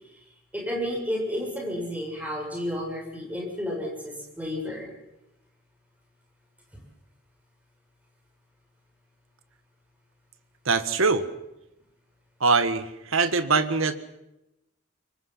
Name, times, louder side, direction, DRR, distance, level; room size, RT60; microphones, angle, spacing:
voice 1, 0.5-4.9, equal, 5° right, -1 dB, 7.1 m, -31 dB
voice 2, 10.7-11.2 12.4-14.0, right 4 dB, 85° right, 11 dB, 1.6 m, -23 dB
26.0 x 24.0 x 5.9 m, 0.90 s
head